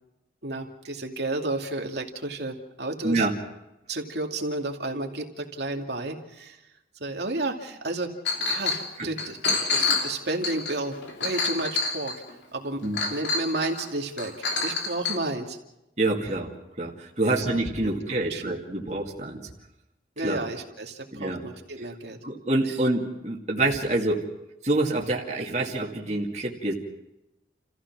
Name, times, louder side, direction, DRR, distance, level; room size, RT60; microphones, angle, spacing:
voice 1, 0.4-3.3 3.9-6.6 7.0-8.1 8.4-8.7 9.0-12.1 12.5-12.8 13.1-14.3 14.6-15.6 16.2-16.4 17.2-17.5 17.8-18.5 20.2-22.2 22.7-22.8, right 2 dB, 70° right, 2 dB, 2.5 m, -32 dB
Chink clink, 8.2-8.8 9.2-12.3 12.9-13.8 14.2-15.2, left 4 dB, 75° left, 2.9 m, -27 dB
voice 2, 16.0-19.4 20.2-20.4 21.1-21.4 22.2-24.2 24.6-26.7, right 2 dB, 40° right, -1 dB, 2.3 m, -26 dB
29.5 x 15.0 x 6.1 m, 0.92 s
head